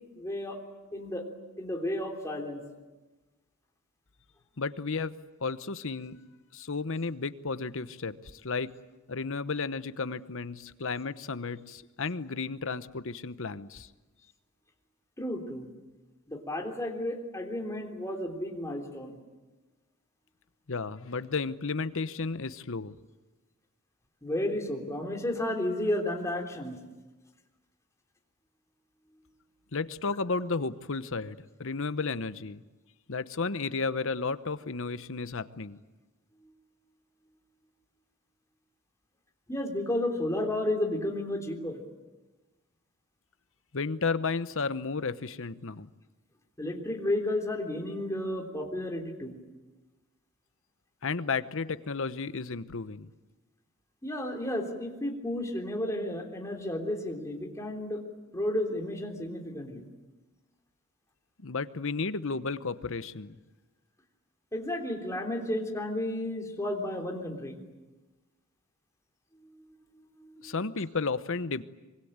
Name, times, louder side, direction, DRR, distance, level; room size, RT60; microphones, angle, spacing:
voice 1, 0.1-0.6 0.9-1.2 1.6-2.6 15.2-15.7 16.3-19.2 24.2-26.8 36.4-36.5 39.5-41.8 46.6-49.4 54.0-58.0 58.3-59.8 64.5-67.6 69.4-69.7 69.9-70.5, left 1 dB, 15° left, 1 dB, 3.4 m, -32 dB
voice 2, 4.6-6.2 6.5-8.7 9.1-13.9 20.7-22.9 29.7-32.6 33.1-35.8 43.7-45.9 51.0-53.1 61.4-63.4 70.4-71.6, left 4 dB, 65° left, 13 dB, 1.0 m, -33 dB
25.0 x 23.5 x 8.9 m, 1.2 s
head